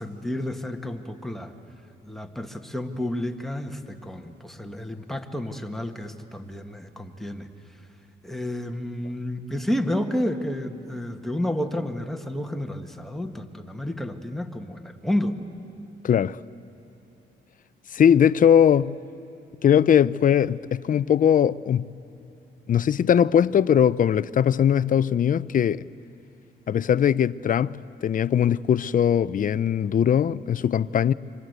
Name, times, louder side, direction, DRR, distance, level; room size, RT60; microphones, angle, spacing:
voice 1, 0.0-1.5 2.0-7.5 8.2-15.3, left 1 dB, ahead, 1.6 m, -30 dB
voice 2, 16.0-16.4 17.9-19.0 19.6-21.9 22.7-25.8 26.7-31.1, left 9 dB, 45° left, 0.5 m, -20 dB
27.0 x 25.5 x 8.1 m
cardioid pair, 90°, 20 cm